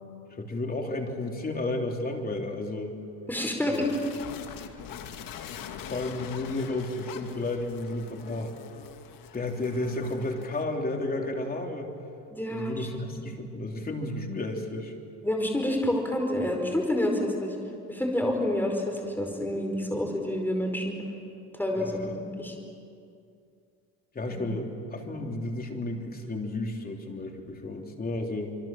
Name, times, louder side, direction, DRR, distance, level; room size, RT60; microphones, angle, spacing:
voice 1, 0.3-3.0 3.6-3.8 5.8-8.5 9.3-11.9 12.5-14.9 21.8-22.2 24.1-28.6, left 2 dB, 20° left, 2 dB, 3.4 m, -32 dB
voice 2, 3.3-3.9 12.3-12.9 15.2-17.5 17.9-21.0 21.6-22.5, left 1 dB, 5° left, 2 dB, 5.1 m, -28 dB
sound 1, 3.7-10.6, left 8 dB, 55° left, 2.2 m, -43 dB
26.5 x 24.5 x 7.5 m, 2.5 s
cardioid pair, 120°, 40 cm